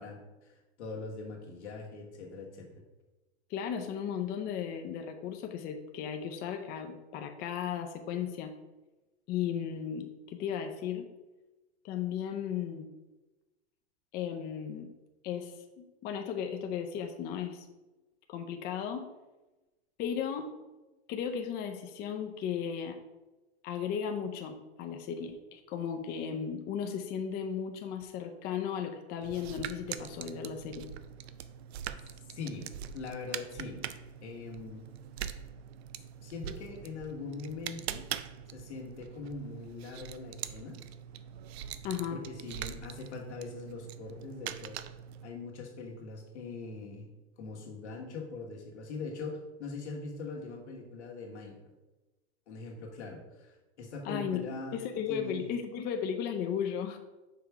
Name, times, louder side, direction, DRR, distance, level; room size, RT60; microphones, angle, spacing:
voice 1, 0.0-2.7 32.3-32.7 32.9-33.8 34.2-34.8 36.2-38.0 38.5-40.8 42.1-44.7 45.2-47.1 47.4-51.5 52.5-54.8 55.1-55.4, left 4 dB, 85° left, -1 dB, 1.6 m, -42 dB
voice 2, 3.5-8.5 9.3-11.1 11.8-12.9 14.1-14.9 15.2-17.7 18.3-19.1 20.0-20.5 21.1-23.0 23.6-30.9 41.8-42.2 54.0-54.5 54.7-57.0, left 8 dB, 30° left, 5 dB, 0.5 m, -35 dB
sound 1, 29.2-45.3, right 10 dB, 70° right, 0.5 m, -43 dB
5.8 x 3.4 x 4.8 m, 1.1 s
hypercardioid pair, 120°, 33 cm